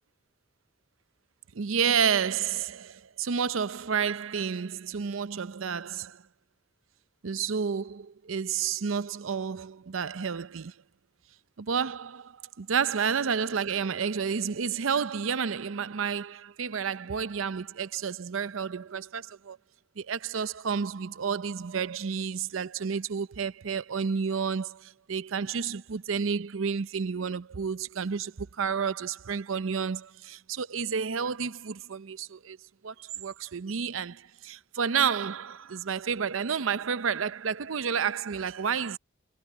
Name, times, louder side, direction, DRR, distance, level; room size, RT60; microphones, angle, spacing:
voice 1, 1.5-6.2 7.2-10.7 11.6-19.6 20.0-32.6 32.8-39.0, right 6 dB, 80° right, 0.6 m, -30 dB
head